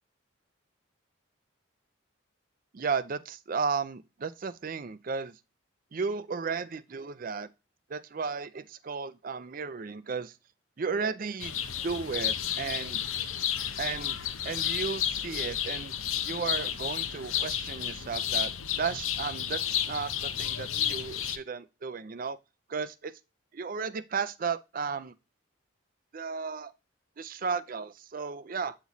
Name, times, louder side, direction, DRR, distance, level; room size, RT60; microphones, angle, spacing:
voice 1, 2.7-5.4 5.9-7.5 7.9-10.3 10.8-11.5 11.8-13.0 13.8-14.2 14.4-18.5 18.8-22.4 22.7-23.1 23.5-25.1 26.1-26.7 27.2-28.8, right 5 dB, 40° right, 0.4 m, -34 dB
sound 1, 11.4-21.4, left 10 dB, 80° left, 0.6 m, -32 dB
8.2 x 3.0 x 4.0 m
head